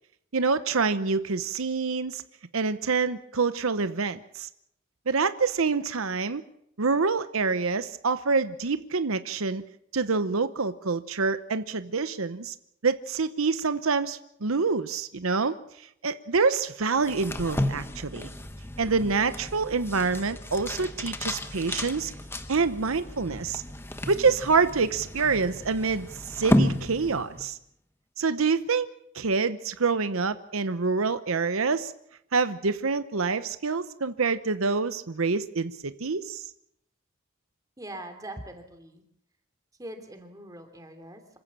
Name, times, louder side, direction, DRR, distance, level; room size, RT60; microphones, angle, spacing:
voice 1, 0.3-2.2 2.5-4.5 5.1-6.4 6.8-9.6 9.9-12.5 12.8-18.3 18.8-22.1 22.5-23.6 24.1-27.6 28.2-28.9 29.1-31.9 32.3-36.5, right 4 dB, 85° right, 12 dB, 0.9 m, -26 dB
sound 1, 17.0-27.5, left 1 dB, 10° left, 1.1 m, -32 dB
voice 2, 37.8-39.0 39.8-41.4, right 1 dB, 15° right, 6 dB, 2.9 m, -42 dB
26.5 x 15.5 x 7.5 m, 0.76 s
head